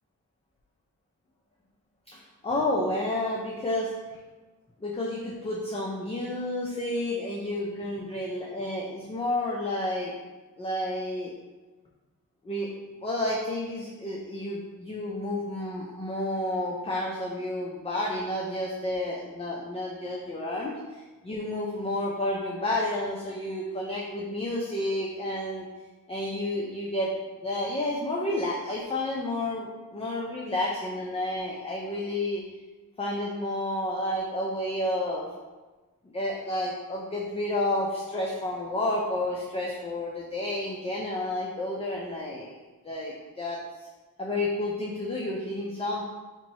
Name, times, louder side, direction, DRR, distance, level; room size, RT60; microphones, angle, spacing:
voice 1, 2.1-3.9 4.8-10.1 10.6-11.3 12.4-12.7 13.0-25.7 26.1-27.1 27.4-32.4 33.0-35.3 36.1-42.6 42.8-43.6 44.2-46.0, left 1 dB, 20° left, -3 dB, 0.4 m, -30 dB
2.9 x 2.6 x 4.1 m, 1.2 s
wide cardioid pair, 140°, 35 cm